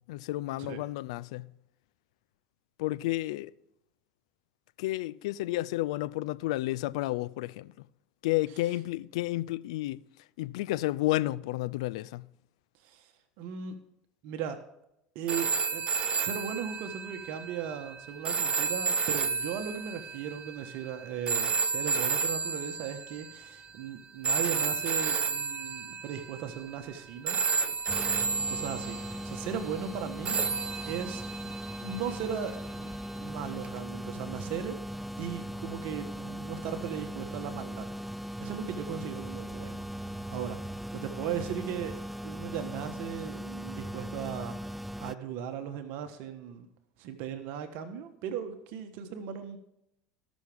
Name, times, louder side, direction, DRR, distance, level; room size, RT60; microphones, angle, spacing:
voice 1, 0.1-1.5 2.8-3.5 4.8-7.7 8.2-10.0 10.4-12.3, left 17 dB, 80° left, 0.4 m, -31 dB
voice 2, 12.8-13.1 13.4-13.7 14.2-14.6 15.1-27.4 28.5-30.4 30.9-31.5 31.8-34.8 35.2-37.9 38.4-40.6 40.9-41.9 42.2-46.7 47.0-49.6, right 8 dB, 65° right, 1.3 m, -37 dB
sound 1, 15.3-23.5 24.2-27.0 27.3-29.4 30.3-32.5 33.6-33.8, right 5 dB, 35° right, 0.8 m, -32 dB
sound 2, 27.9-45.1, equal, ahead, 0.4 m, -39 dB
18.5 x 6.3 x 3.6 m
hypercardioid pair, 85°, 3 cm